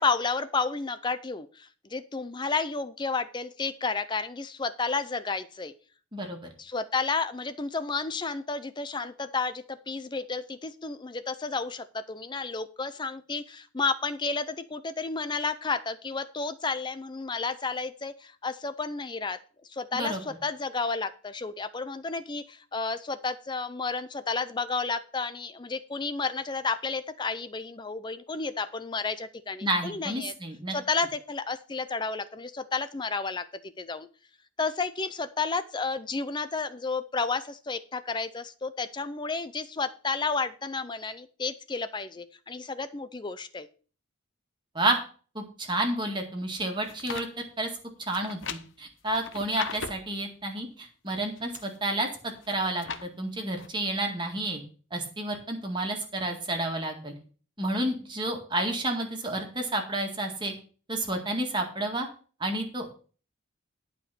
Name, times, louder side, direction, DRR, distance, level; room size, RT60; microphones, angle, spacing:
voice 1, 0.0-5.7 6.6-19.4 19.7-30.3 30.7-34.1 34.6-43.7, left 4 dB, 20° left, 12 dB, 0.5 m, -31 dB
voice 2, 29.6-30.7 44.8-45.0 45.4-47.7 48.1-54.6 54.9-57.1 57.6-60.5 60.9-62.1 62.4-62.9, right 1 dB, 20° right, 2 dB, 1.9 m, -30 dB
sound 1, 46.6-47.3 48.1-50.1 51.1-51.8 52.3-53.1 53.6-53.7, left 6 dB, 60° left, 0.8 m, -39 dB
11.5 x 5.0 x 6.8 m, 0.39 s
head